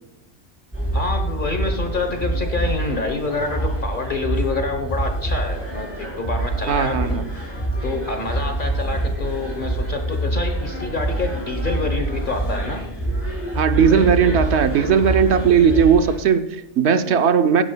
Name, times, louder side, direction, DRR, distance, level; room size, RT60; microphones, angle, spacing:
sound 1, 0.7-16.1, right 1 dB, 10° right, 4.2 m, -26 dB
voice 1, 0.9-12.8, left 3 dB, 45° left, 5 dB, 1.1 m, -27 dB
voice 2, 6.7-7.3 13.5-17.6, right 7 dB, 70° right, 9 dB, 1.0 m, -17 dB
16.0 x 9.9 x 2.2 m, 0.86 s
omnidirectional pair, 1.2 m